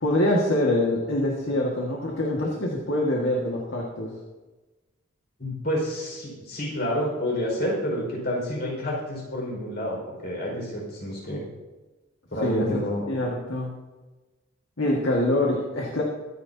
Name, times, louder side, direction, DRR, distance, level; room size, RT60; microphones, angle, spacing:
voice 1, 0.0-4.1 12.4-12.8 13.1-13.7 14.8-16.0, left 1 dB, 70° left, -2 dB, 1.9 m, -25 dB
voice 2, 5.4-11.4 12.3-13.1, equal, 50° left, -2 dB, 5.2 m, -29 dB
23.0 x 9.8 x 2.8 m, 1.2 s
head